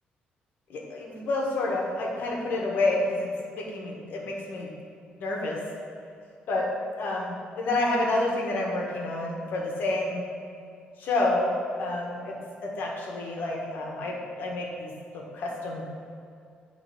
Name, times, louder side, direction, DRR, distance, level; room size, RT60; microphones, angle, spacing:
voice 1, 0.7-4.7 5.2-5.6 6.5-6.7 7.0-10.2 11.0-15.8, left 2 dB, 75° left, -1 dB, 1.7 m, -29 dB
10.0 x 3.8 x 6.4 m, 2.4 s
cardioid pair, 110°, 3 cm